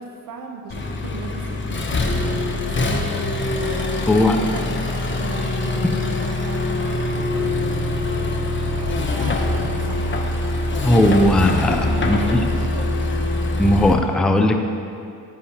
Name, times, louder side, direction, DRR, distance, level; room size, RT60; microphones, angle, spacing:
voice 1, 0.0-4.7 5.1-10.2 10.9-11.3 11.7-13.1, right 4 dB, 55° right, 2 dB, 0.8 m, -37 dB
Accelerating revving vroom, 0.7-13.9, left 2 dB, 30° left, 0.7 m, -23 dB
voice 2, 4.1-4.4 10.8-12.4 13.6-14.6, left 1 dB, ahead, 5 dB, 0.4 m, -17 dB
9.7 x 4.1 x 2.9 m, 2.5 s
supercardioid pair, 60°, 42 cm